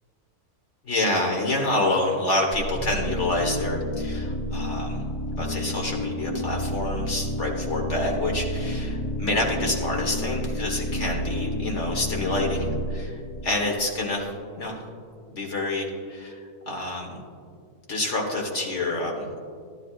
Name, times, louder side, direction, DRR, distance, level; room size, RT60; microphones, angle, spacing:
voice 1, 0.8-5.0 5.4-14.3 14.5-14.9 15.3-16.4 16.7-17.2 17.9-19.5, left 2 dB, 50° left, 0 dB, 1.8 m, -27 dB
sound 1, 2.5-14.3, equal, 25° left, 0.8 m, -30 dB
13.5 x 12.5 x 2.5 m, 2.2 s
omnidirectional pair, 1.6 m